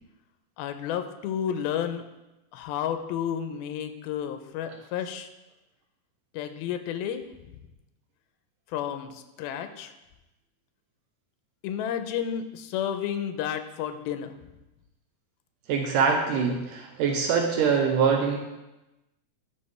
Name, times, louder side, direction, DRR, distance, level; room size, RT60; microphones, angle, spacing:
voice 1, 0.6-2.0 2.5-5.3 6.3-7.2 8.7-9.9 11.6-14.4, left 9 dB, 90° left, 8 dB, 2.5 m, -31 dB
voice 2, 15.7-18.4, right 6 dB, 80° right, 2 dB, 2.0 m, -24 dB
11.0 x 6.6 x 3.3 m, 0.99 s
omnidirectional pair, 4.3 m